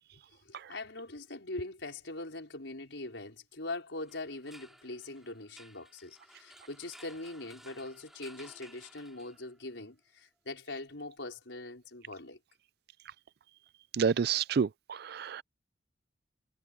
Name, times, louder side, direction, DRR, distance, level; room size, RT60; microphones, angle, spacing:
voice 1, 0.4-12.4, left 2 dB, 75° left, 5.1 m, -42 dB
sound 1, 4.0-9.7, equal, ahead, 2.5 m, -56 dB
voice 2, 13.9-15.4, right 6 dB, 55° right, 0.4 m, -29 dB
head